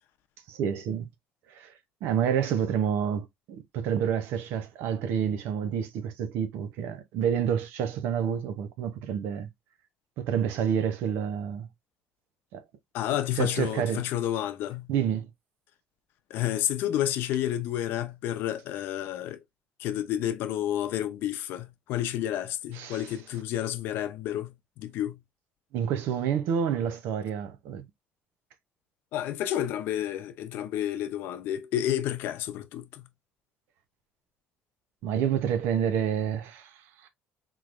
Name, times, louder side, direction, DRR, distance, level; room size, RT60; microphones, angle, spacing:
voice 1, 0.5-1.1 1.5-1.7 2.0-9.5 10.2-11.7 12.5-12.6 13.4-14.0 14.9-15.3 22.7-23.1 25.7-27.8 35.0-37.1, right 8 dB, 80° right, 0.8 m, -29 dB
voice 2, 12.9-14.9 16.3-19.4 19.8-25.2 29.1-33.1, left 12 dB, 75° left, 0.7 m, -30 dB
3.8 x 3.1 x 2.5 m
cardioid pair, 145°, 4 cm